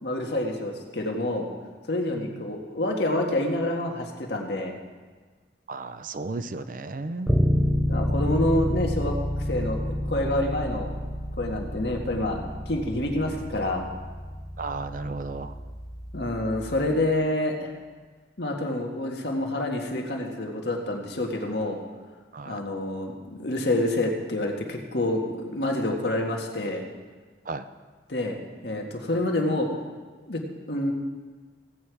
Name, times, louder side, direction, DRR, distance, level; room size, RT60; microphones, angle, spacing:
voice 1, 0.0-1.5 1.9-4.7 7.9-10.9 11.4-13.9 16.1-17.7 18.4-21.8 22.4-26.8 28.1-28.4 28.6-29.7 30.3-30.4 30.7-30.9, left 1 dB, 65° left, 1 dB, 1.7 m, -27 dB
voice 2, 2.1-2.4 5.7-7.5 14.6-15.5 22.3-22.6 27.5-27.6, right 3 dB, 45° right, 11 dB, 0.5 m, -34 dB
Bass guitar, 7.3-17.1, equal, ahead, 0.7 m, -29 dB
16.0 x 8.6 x 4.8 m, 1.4 s
head